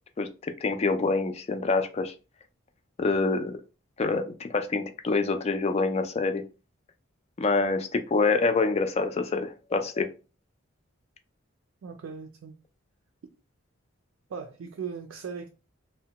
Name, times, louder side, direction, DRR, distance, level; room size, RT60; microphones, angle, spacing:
voice 1, 0.2-2.1 3.0-3.6 4.0-6.4 7.4-10.1, left 3 dB, 30° left, 0.3 m, -26 dB
voice 2, 11.8-12.5 14.3-15.5, right 6 dB, 75° right, 0.4 m, -38 dB
2.8 x 2.2 x 2.7 m
head